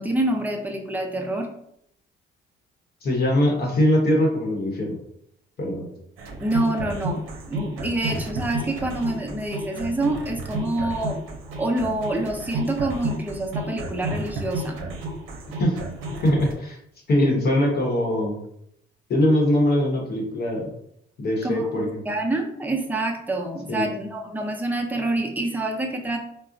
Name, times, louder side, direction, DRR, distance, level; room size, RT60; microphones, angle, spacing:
voice 1, 0.0-1.5 6.4-11.2 11.6-14.8 21.4-26.2, right 2 dB, 10° right, 2 dB, 0.5 m, -27 dB
voice 2, 3.0-5.0 5.6-5.9 15.6-15.8 16.2-16.8 17.1-18.4 19.1-20.7 21.2-22.0 23.7-23.8, left 1 dB, 55° left, -1 dB, 0.9 m, -22 dB
sound 1, 6.2-16.5, right 1 dB, 85° right, 0.6 m, -32 dB
3.7 x 2.0 x 2.5 m, 0.73 s
cardioid pair, 90°, 20 cm